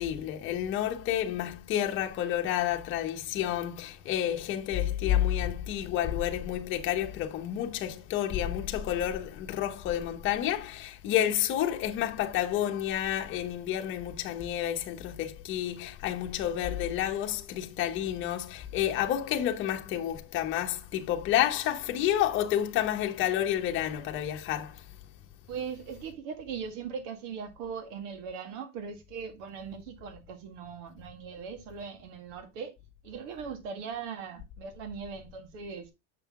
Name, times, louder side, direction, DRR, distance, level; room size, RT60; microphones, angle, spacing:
voice 1, 0.0-24.9, left 11 dB, 35° left, 0.9 m, -30 dB
voice 2, 25.5-32.7 33.0-35.9, right 6 dB, 80° right, 1.8 m, -39 dB
6.7 x 5.6 x 3.6 m
cardioid pair, 170°, 37 cm